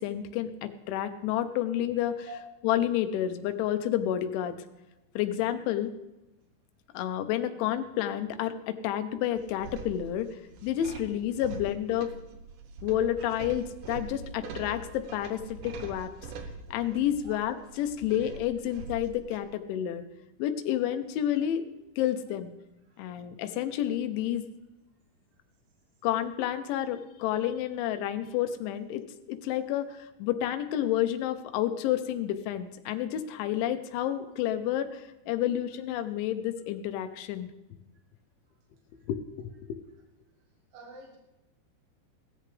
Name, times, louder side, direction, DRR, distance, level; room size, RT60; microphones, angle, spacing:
voice 1, 0.0-2.3 2.6-4.6 5.2-5.9 6.9-10.3 10.6-12.1 12.8-16.1 16.7-20.0 20.4-21.7 22.0-22.5 23.0-24.4 26.0-29.0 29.3-37.5 39.1-39.5, left 11 dB, 90° left, 9 dB, 3.3 m, -30 dB
sound 1, 9.4-19.4, right 4 dB, 75° right, 2.0 m, -43 dB
voice 2, 40.7-41.2, right 3 dB, 55° right, -1 dB, 1.8 m, -46 dB
17.5 x 13.5 x 3.4 m, 0.98 s
omnidirectional pair, 5.3 m